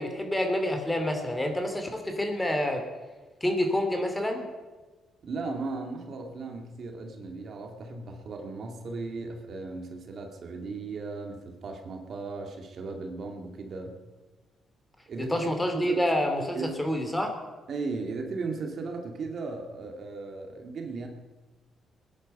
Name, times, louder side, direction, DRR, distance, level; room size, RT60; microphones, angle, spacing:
voice 1, 0.0-2.8 3.4-4.5 15.2-17.3, left 1 dB, 10° left, 5 dB, 2.7 m, -28 dB
voice 2, 5.2-14.0 15.1-16.0 16.5-16.9 17.7-21.1, right 3 dB, 55° right, 3 dB, 2.2 m, -36 dB
20.5 x 10.5 x 5.4 m, 1.3 s
cardioid pair, 90°, 0 cm